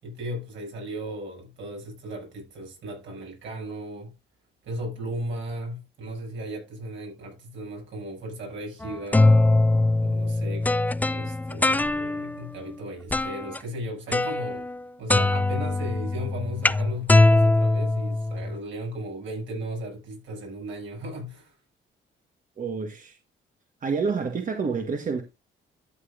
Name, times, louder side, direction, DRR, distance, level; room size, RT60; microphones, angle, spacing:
voice 1, 0.0-4.1 4.6-9.3 10.0-10.7 11.1-14.7 15.0-21.5, equal, 75° right, 6.9 m, -36 dB
sound 1, 8.8-12.4 13.1-13.6 14.1-14.8 15.1-18.6, left 2 dB, 10° left, 0.4 m, -22 dB
voice 2, 22.6-23.2 23.8-25.2, right 5 dB, 40° right, 1.4 m, -28 dB
12.5 x 7.7 x 2.6 m
cardioid pair, 90°, 20 cm